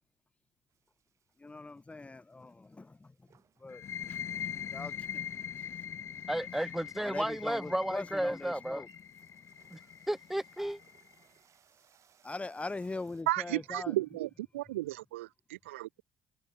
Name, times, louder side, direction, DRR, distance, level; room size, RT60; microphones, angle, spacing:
sound 1, 0.7-13.2, right 9 dB, 45° right, 6.8 m, -70 dB
voice 1, 1.4-3.3 3.6-4.2 4.7-5.2 5.6-5.7 7.0-8.9 12.2-14.0, left 3 dB, 20° left, 2.4 m, -42 dB
sound 2, 3.7-11.1, left 8 dB, 40° left, 0.7 m, -42 dB
voice 2, 6.3-8.8 9.7-9.8 10.1-10.8, right 1 dB, 5° right, 0.5 m, -33 dB
voice 3, 13.3-16.0, right 17 dB, 75° right, 0.6 m, -34 dB
figure-of-eight pair, 50°, 7 cm